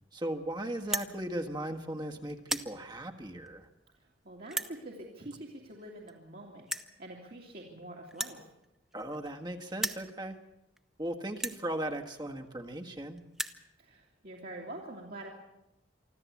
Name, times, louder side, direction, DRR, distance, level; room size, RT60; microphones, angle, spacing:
voice 1, 0.1-3.7 8.9-10.4 11.0-13.2, right 1 dB, 25° right, 5 dB, 1.6 m, -37 dB
sound 1, 0.8-1.1 1.8-2.0 2.3-2.7 3.5-3.6 4.5-4.7 5.8-5.9 6.1-6.2 6.7-6.9 8.1-9.4 9.7-10.1 10.8-10.9 11.3-11.6 12.5-12.6 12.8-12.9 13.2-13.6, right 1 dB, 5° right, 0.9 m, -35 dB
voice 2, 4.0-6.7 7.0-8.5 13.8-15.3, right 1 dB, 55° right, -2 dB, 2.6 m, -45 dB
25.0 x 14.0 x 8.4 m, 0.90 s
head